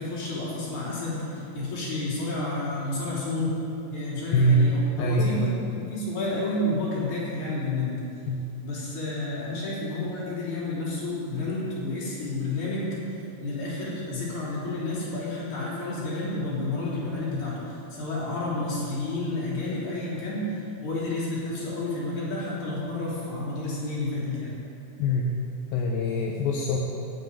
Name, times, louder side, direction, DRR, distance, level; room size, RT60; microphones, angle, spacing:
voice 1, 0.0-3.5 3.9-8.0 8.6-12.9 13.4-17.6 17.9-20.5 20.8-24.6, left 2 dB, 55° left, -7 dB, 5.2 m, -30 dB
voice 2, 4.3-4.6 5.0-5.5 8.3-8.4 25.0-25.3 25.7-26.8, equal, 80° left, -1 dB, 2.8 m, -23 dB
12.0 x 9.9 x 9.0 m, 2.8 s
omnidirectional pair, 4.1 m